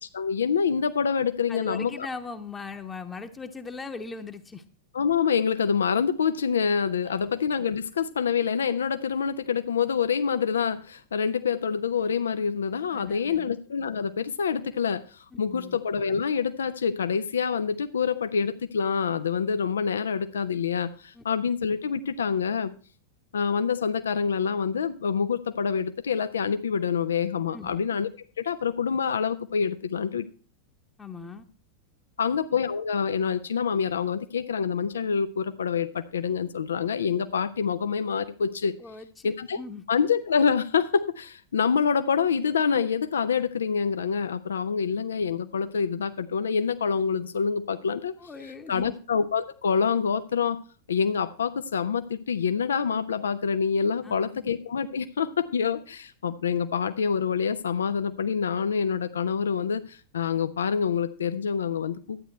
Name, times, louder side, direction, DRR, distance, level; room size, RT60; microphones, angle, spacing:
voice 1, 0.1-2.1 4.9-22.7 23.3-28.1 28.4-30.3 32.2-38.7 39.2-39.6 39.9-48.1 48.7-50.6 50.9-62.2, left 6 dB, 70° left, 11 dB, 0.5 m, -26 dB
voice 2, 1.5-4.6 7.0-7.3 12.9-13.5 15.3-15.8 21.1-21.2 27.5-27.8 31.0-31.4 38.8-39.8 48.2-48.9 54.0-54.5, left 4 dB, 15° left, 5 dB, 0.9 m, -40 dB
12.0 x 9.1 x 4.4 m, 0.38 s
figure-of-eight pair, 90°, 0 cm